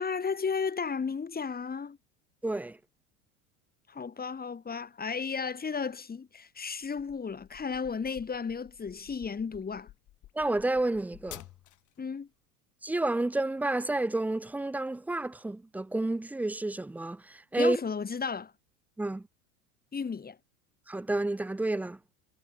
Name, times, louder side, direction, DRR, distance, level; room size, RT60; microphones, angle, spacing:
voice 1, 0.0-2.0 3.9-9.9 12.0-12.3 17.6-18.5 19.9-20.4, left 5 dB, 20° left, 3.6 m, -34 dB
voice 2, 2.4-2.8 10.3-11.4 12.8-17.8 19.0-19.2 20.9-22.0, right 2 dB, 5° right, 0.5 m, -30 dB
sound 1, 6.8-12.0, left 14 dB, 40° left, 2.3 m, -51 dB
hypercardioid pair, 85°, 44 cm